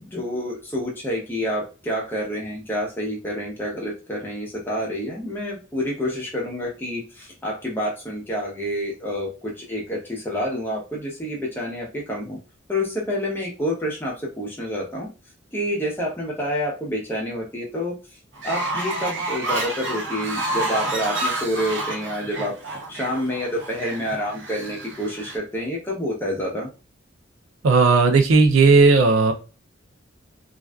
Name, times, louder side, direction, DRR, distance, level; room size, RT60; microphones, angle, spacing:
voice 1, 0.0-12.4 12.7-15.1 15.5-18.0 18.4-22.5 22.9-26.7, equal, 10° left, -3 dB, 0.7 m, -28 dB
Fowl, 18.4-25.4, right 2 dB, 65° right, 0.8 m, -29 dB
voice 2, 27.6-29.3, right 4 dB, 90° right, 6 dB, 0.5 m, -15 dB
2.5 x 2.3 x 2.2 m, 0.32 s
head